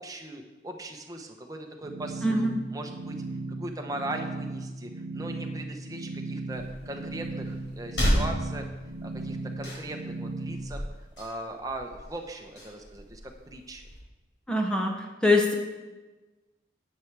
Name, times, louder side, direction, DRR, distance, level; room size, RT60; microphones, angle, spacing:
voice 1, 0.0-3.2 3.5-8.7 9.0-10.9 11.2-13.2 13.5-13.8, right 1 dB, 20° right, 3 dB, 0.9 m, -39 dB
sound 1, 1.8-10.7, right 2 dB, 60° right, 0.7 m, -37 dB
voice 2, 2.2-2.6 14.5-15.0 15.2-15.5, left 2 dB, 5° left, 1 dB, 0.9 m, -23 dB
sound 2, 6.5-14.0, equal, 85° left, 4.2 m, -34 dB
10.0 x 8.9 x 4.7 m, 1.2 s
head